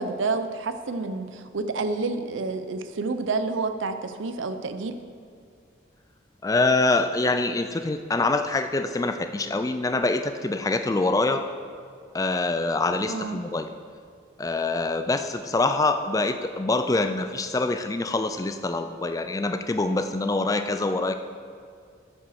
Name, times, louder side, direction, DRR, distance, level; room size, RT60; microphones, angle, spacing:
voice 1, 0.0-4.9 13.1-13.4, right 3 dB, 85° right, 9 dB, 0.6 m, -29 dB
voice 2, 6.4-11.4 12.1-13.7 14.4-21.1, left 3 dB, 20° left, 9 dB, 0.3 m, -25 dB
8.9 x 5.6 x 6.5 m, 2.3 s
head